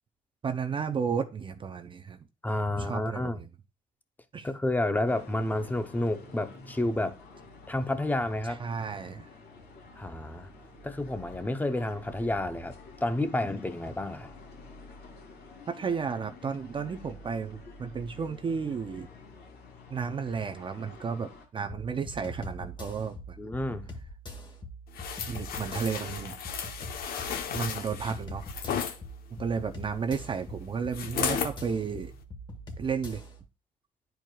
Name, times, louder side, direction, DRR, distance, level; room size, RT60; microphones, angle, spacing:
voice 1, 0.4-2.2 2.7-3.5 4.3-4.5 8.4-9.3 15.7-19.1 19.9-23.4 25.3-26.4 27.5-28.5 29.4-32.1 32.8-33.2, right 6 dB, 30° right, 0.5 m, -33 dB
voice 2, 2.4-3.4 4.4-7.2 7.7-8.6 10.0-10.5 10.8-14.4 23.4-23.9, left 1 dB, 10° left, 0.7 m, -30 dB
sound 1, 5.1-21.5, left 3 dB, 80° left, 2.4 m, -50 dB
sound 2, 21.7-33.4, equal, 25° left, 1.5 m, -43 dB
sound 3, 25.0-29.0 30.9-31.6 32.1-32.2, left 7 dB, 60° left, 0.9 m, -34 dB
10.5 x 4.6 x 2.3 m
cardioid pair, 110°, 17 cm